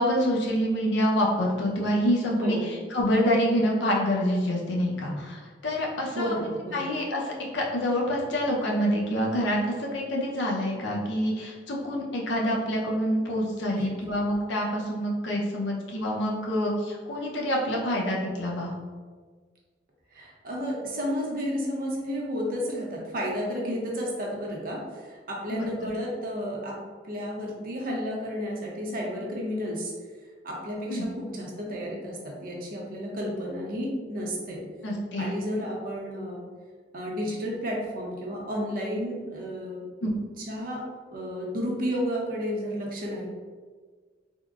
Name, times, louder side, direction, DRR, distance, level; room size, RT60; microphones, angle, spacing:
voice 1, 0.0-2.6 2.9-6.4 6.7-18.7 25.5-25.6 30.9-31.1 34.8-35.3 40.0-40.1, equal, 80° left, -2 dB, 0.6 m, -26 dB
voice 2, 6.1-6.9 13.8-13.9 20.1-26.8 27.0-29.9 30.4-34.6 35.2-36.4 36.9-39.8 40.5-40.8 41.1-43.3, equal, 50° right, -2 dB, 0.6 m, -32 dB
3.6 x 2.0 x 2.3 m, 1.5 s
head